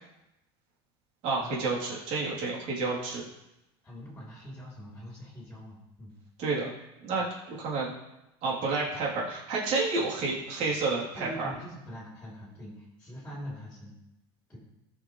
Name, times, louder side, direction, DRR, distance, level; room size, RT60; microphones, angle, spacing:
voice 1, 1.2-3.2 6.4-6.7 7.0-7.9 8.4-11.5, right 3 dB, 55° right, -4 dB, 3.2 m, -30 dB
voice 2, 3.8-6.1 7.2-7.3 11.2-13.9 14.5-14.6, equal, 10° left, -5 dB, 3.1 m, -43 dB
14.0 x 6.1 x 3.2 m, 0.91 s
supercardioid pair, 130°, 14 cm